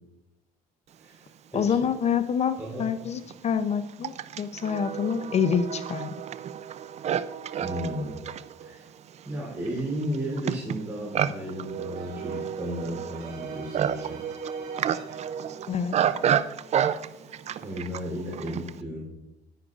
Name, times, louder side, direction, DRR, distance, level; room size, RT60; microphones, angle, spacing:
voice 1, 1.0-1.8 2.6-2.8 7.6-8.2 8.6-8.9 9.2-14.2 17.6-19.1, equal, 15° right, -6 dB, 3.3 m, -34 dB
voice 2, 1.5-6.1 15.7-16.0, left 7 dB, 40° left, 11 dB, 0.5 m, -27 dB
Livestock farm animals working animals, 2.0-2.1 2.9-18.8, right 9 dB, 40° right, 0.4 m, -31 dB
Keyboard (musical), 11.3-17.7, right 3 dB, 90° right, 3.3 m, -52 dB
10.5 x 10.0 x 2.4 m, 0.93 s
cardioid pair, 110°, 17 cm